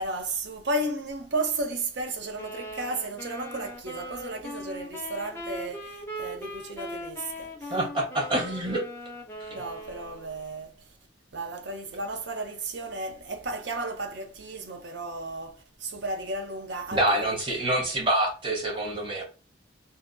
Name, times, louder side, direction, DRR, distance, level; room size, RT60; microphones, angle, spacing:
voice 1, 0.0-7.8 9.5-11.0 11.3-17.9, right 2 dB, 65° right, 0.5 m, -34 dB
sound 1, 2.4-10.4, equal, 10° left, 0.4 m, -39 dB
voice 2, 7.7-8.8 9.4-9.5 16.9-19.2, right 1 dB, 25° right, 0.8 m, -26 dB
2.6 x 2.2 x 2.5 m
head